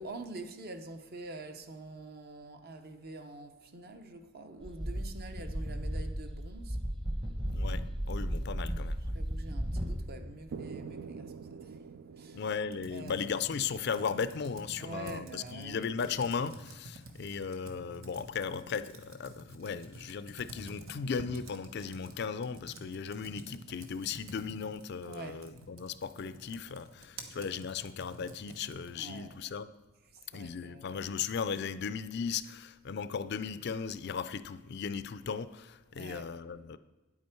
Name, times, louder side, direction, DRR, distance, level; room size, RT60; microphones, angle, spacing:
voice 1, 0.0-6.8 9.1-12.5 12.9-13.3 14.8-15.9 25.0-25.4 28.9-29.4 30.1-31.0 35.9-36.3, right 2 dB, 50° right, 0.8 m, -46 dB
sound 1, 4.6-10.0, equal, 25° right, 1.0 m, -35 dB
voice 2, 7.5-9.2 12.3-29.7 30.3-36.8, left 6 dB, 55° left, 0.4 m, -36 dB
sound 2, 10.5-14.4, right 5 dB, 70° right, 0.4 m, -46 dB
Computer keyboard, 12.6-29.1, right 2 dB, 85° right, 1.2 m, -50 dB
9.6 x 8.5 x 4.5 m
head